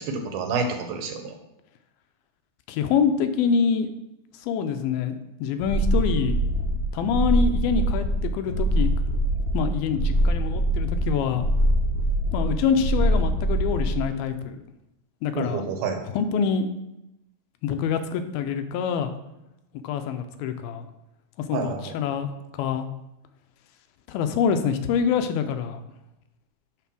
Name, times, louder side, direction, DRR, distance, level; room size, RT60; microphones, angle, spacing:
voice 1, 0.0-1.3 15.3-16.0 21.5-22.0, right 4 dB, 80° right, 5 dB, 2.9 m, -29 dB
voice 2, 2.7-3.9 4.4-6.4 6.9-8.9 9.5-11.5 12.3-14.6 15.2-15.7 16.1-16.7 17.6-19.1 19.8-20.9 21.5-22.3 22.5-22.9 24.1-25.8, left 6 dB, 80° left, 8 dB, 2.4 m, -25 dB
sound 1, 5.6-14.1, right 1 dB, 60° left, 2.7 m, -23 dB
9.1 x 4.0 x 6.1 m, 0.90 s
omnidirectional pair, 4.4 m